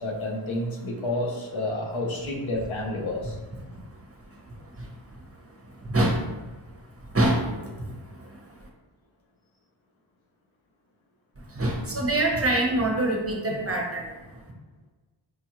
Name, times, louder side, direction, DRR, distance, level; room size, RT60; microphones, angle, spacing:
voice 1, 0.0-3.4, left 1 dB, 75° left, 0 dB, 0.8 m, -30 dB
voice 2, 11.6-14.0, right 1 dB, 30° right, -1 dB, 0.7 m, -24 dB
4.9 x 2.3 x 2.9 m, 1.2 s
wide cardioid pair, 65°, 47 cm